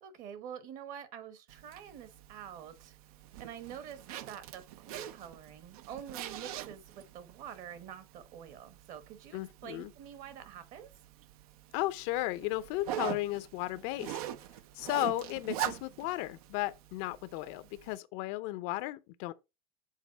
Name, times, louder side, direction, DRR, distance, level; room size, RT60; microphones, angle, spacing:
voice 1, 0.0-3.0 3.4-4.0 4.3-10.9, right 9 dB, 45° right, 1.2 m, -47 dB
Zipper (clothing), 1.5-18.0, right 11 dB, 75° right, 0.7 m, -44 dB
voice 2, 9.3-9.9 11.7-14.2 14.7-19.3, left 17 dB, 55° left, 0.6 m, -35 dB
7.3 x 4.0 x 4.0 m
supercardioid pair, 140°, 19 cm